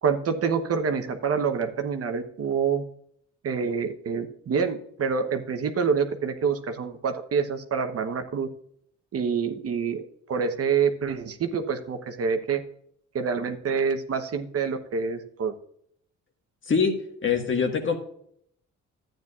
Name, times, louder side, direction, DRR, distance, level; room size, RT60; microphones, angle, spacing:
voice 1, 0.0-2.8 3.4-8.5 9.1-10.0 10.3-12.6 13.1-15.5, right 6 dB, 50° right, 6 dB, 1.0 m, -27 dB
voice 2, 16.7-18.0, left 5 dB, 40° left, 4 dB, 1.6 m, -24 dB
12.0 x 9.0 x 2.4 m, 0.67 s
cardioid pair, 90°, 30 cm